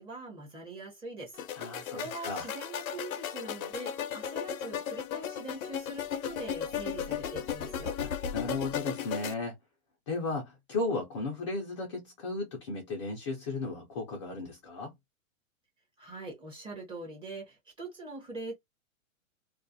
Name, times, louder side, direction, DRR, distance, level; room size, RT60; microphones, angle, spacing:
voice 1, 0.0-1.4 1.9-8.0 16.0-18.5, right 2 dB, 10° right, 0.7 m, -43 dB
sound 1, 1.3-9.3, left 9 dB, 85° left, 0.6 m, -36 dB
voice 2, 1.6-2.5 8.0-9.5 10.1-14.9, left 3 dB, 25° left, 0.4 m, -35 dB
2.3 x 2.0 x 2.6 m
hypercardioid pair, 135°, 41 cm